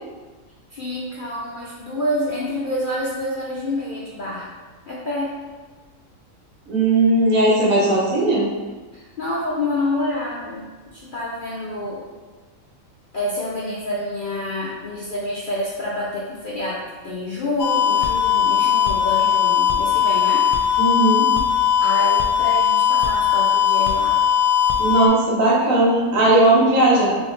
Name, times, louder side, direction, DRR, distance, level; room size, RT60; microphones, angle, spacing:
voice 1, 0.7-4.5 4.9-5.4 8.9-12.1 13.1-20.5 21.8-24.2, left 1 dB, 60° left, -6 dB, 0.5 m, -27 dB
voice 2, 6.7-8.5 20.8-21.3 24.8-27.2, right 2 dB, 70° right, -5 dB, 1.3 m, -17 dB
sound 1, 17.6-25.1, left 9 dB, 85° left, 1.0 m, -19 dB
3.4 x 3.2 x 3.1 m, 1.3 s
omnidirectional pair, 1.5 m